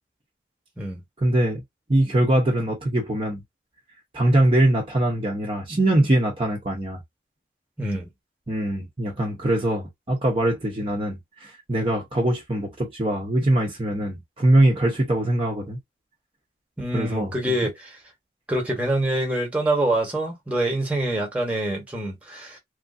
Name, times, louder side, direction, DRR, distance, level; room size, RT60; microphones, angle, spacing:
voice 1, 1.2-1.6 1.9-3.4 4.1-7.0 8.5-15.8 16.9-17.5, right 1 dB, 30° right, 0.7 m, -22 dB
voice 2, 7.8-8.1 16.8-18.0 18.5-22.6, right 1 dB, 10° right, 1.1 m, -25 dB
3.1 x 2.5 x 2.5 m
head